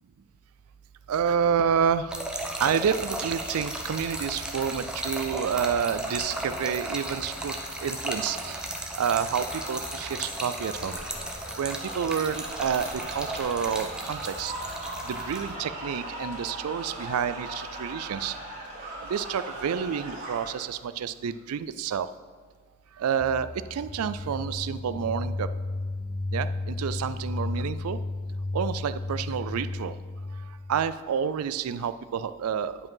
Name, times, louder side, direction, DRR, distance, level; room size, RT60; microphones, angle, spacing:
voice 1, 1.1-2.1 2.6-7.6 7.8-8.6 9.0-11.0 11.6-14.5 15.0-18.3 19.0-22.1 23.0-25.5 26.3-28.0 28.5-29.9 30.7-32.8, right 7 dB, 85° right, 14 dB, 0.4 m, -29 dB
Trickle dribble / Fill (with liquid), 2.1-15.5, right 1 dB, 5° right, 0.8 m, -35 dB
sound 1, 5.5-20.5, right 1 dB, 40° right, 2.4 m, -40 dB
sound 2, 23.2-30.9, left 2 dB, 20° left, 0.5 m, -33 dB
9.7 x 5.3 x 5.5 m, 1.5 s
head